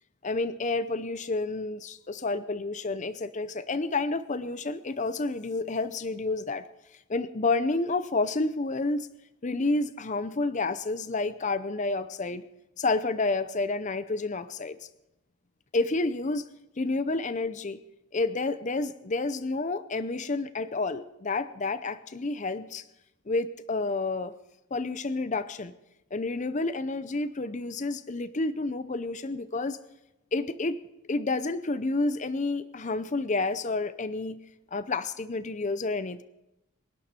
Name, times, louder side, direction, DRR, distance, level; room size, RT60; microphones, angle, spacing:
voice 1, 0.2-6.6 7.1-9.1 9.4-12.4 12.8-14.9 15.7-16.4 16.8-17.8 18.1-22.8 23.3-24.3 24.7-25.7 26.1-29.8 30.3-30.8 31.1-34.4 34.7-36.2, left 3 dB, 35° left, 13 dB, 0.6 m, -29 dB
26.5 x 11.5 x 4.4 m, 0.91 s
head